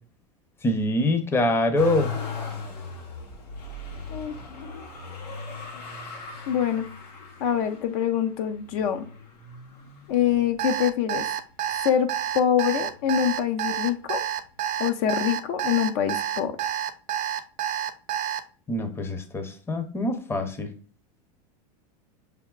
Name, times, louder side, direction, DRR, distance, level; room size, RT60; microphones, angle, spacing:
voice 1, 0.6-2.1 18.7-20.7, left 1 dB, 10° left, 7 dB, 0.6 m, -25 dB
Motor vehicle (road), 1.7-10.9 11.5-12.3 12.6-13.7 14.7-14.8, left 4 dB, 90° left, 1.1 m, -38 dB
voice 2, 6.5-6.9 7.4-9.1 10.1-11.2 11.8-12.1 12.3-14.2 14.8-16.6, left 9 dB, 60° left, 8 dB, 0.5 m, -24 dB
Alarm, 10.6-18.4, right 10 dB, 40° right, 0.5 m, -28 dB
5.6 x 3.4 x 2.3 m, 0.40 s
hypercardioid pair, 110°, 20 cm